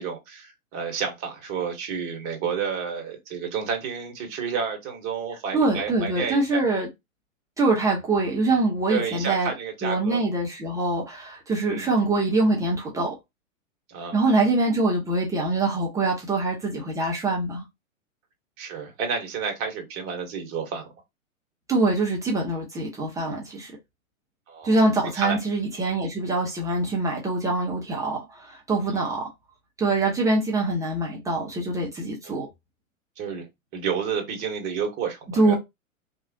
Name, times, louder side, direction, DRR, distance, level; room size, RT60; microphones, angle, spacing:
voice 1, 0.0-6.6 8.9-10.2 11.6-11.9 13.9-14.2 18.6-20.9 24.5-24.8 25.1-25.4 28.9-29.1 32.2-32.4 33.2-33.5 33.7-35.5, right 6 dB, 35° right, 1.1 m, -30 dB
voice 2, 5.5-6.9 7.6-9.5 9.8-13.1 14.1-17.6 21.7-23.7 24.6-29.3 29.8-32.5 35.3-35.5, right 2 dB, 10° right, 0.7 m, -24 dB
3.0 x 2.4 x 2.7 m
figure-of-eight pair, 110°, 41 cm